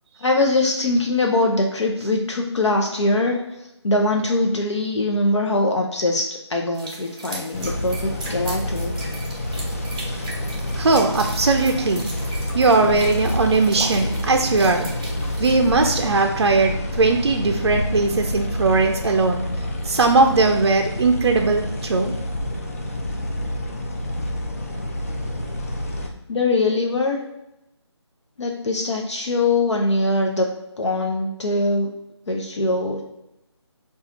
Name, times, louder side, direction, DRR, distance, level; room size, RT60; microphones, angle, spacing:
voice 1, 0.2-3.4 3.8-8.9 26.3-27.2 28.4-30.5 30.8-31.9 32.3-33.0, left 2 dB, 75° left, 1 dB, 0.6 m, -22 dB
sound 1, 6.7-15.7, right 2 dB, 15° right, 0.6 m, -38 dB
sound 2, 7.5-26.1, left 1 dB, 30° left, 0.4 m, -28 dB
voice 2, 10.8-12.1 12.5-14.9 15.4-19.4 19.8-22.1, right 3 dB, 60° right, 4 dB, 0.4 m, -19 dB
4.1 x 2.3 x 3.9 m, 0.89 s
figure-of-eight pair, 165°, 15 cm